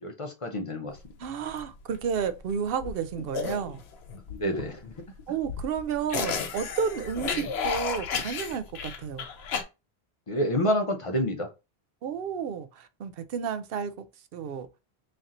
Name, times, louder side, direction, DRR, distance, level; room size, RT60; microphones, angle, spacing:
voice 1, 0.0-1.0 4.3-4.9 7.3-7.5 10.3-11.5, equal, 35° left, 0.7 m, -28 dB
sound 1, 0.9-9.6, left 6 dB, 80° left, 0.9 m, -33 dB
voice 2, 1.2-3.8 5.3-9.3 12.0-14.1 14.3-14.8, right 7 dB, 70° right, 0.8 m, -32 dB
3.2 x 2.8 x 3.7 m
omnidirectional pair, 1.1 m